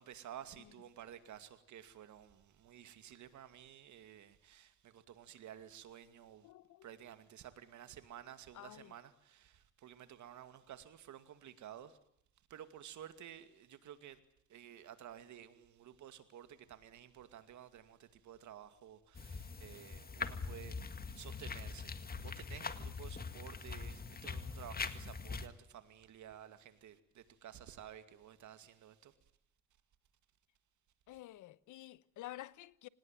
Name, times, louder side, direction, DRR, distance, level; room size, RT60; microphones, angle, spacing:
voice 1, 0.0-6.5 6.8-12.0 12.5-14.2 14.5-20.8 21.1-29.1, right 10 dB, 75° right, 2.4 m, -53 dB
voice 2, 6.4-6.9 8.5-8.9 31.1-32.9, left 15 dB, 80° left, 1.0 m, -50 dB
sound 1, 19.1-25.5, left 4 dB, 30° left, 2.0 m, -43 dB
25.5 x 19.5 x 9.3 m
cardioid pair, 90°, 30 cm